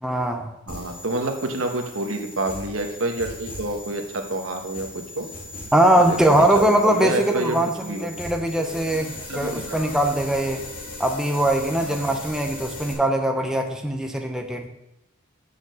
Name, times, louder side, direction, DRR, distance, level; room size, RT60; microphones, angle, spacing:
voice 1, 0.0-0.6 5.7-10.7 11.0-14.7, right 1 dB, 5° right, 3 dB, 0.6 m, -21 dB
sound 1, 0.7-12.9, left 2 dB, 40° left, 2.1 m, -38 dB
voice 2, 0.7-4.9 5.2-5.3 6.0-8.1 8.6-8.7 8.9-9.9 10.2-10.3 11.8-11.9, right 2 dB, 65° right, 4 dB, 1.2 m, -29 dB
7.0 x 6.2 x 6.8 m, 0.89 s
head